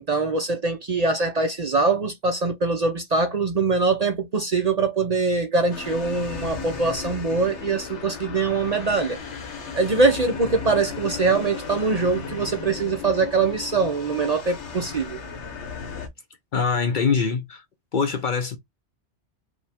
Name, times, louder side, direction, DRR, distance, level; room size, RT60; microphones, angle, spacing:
voice 1, 0.0-9.2 9.7-15.2, right 3 dB, 45° right, 0.6 m, -23 dB
sound 1, 5.7-16.1, left 5 dB, 75° left, 1.3 m, -35 dB
voice 2, 16.5-17.6 17.9-18.6, left 5 dB, 55° left, 0.6 m, -23 dB
5.0 x 2.2 x 3.4 m
omnidirectional pair, 1.2 m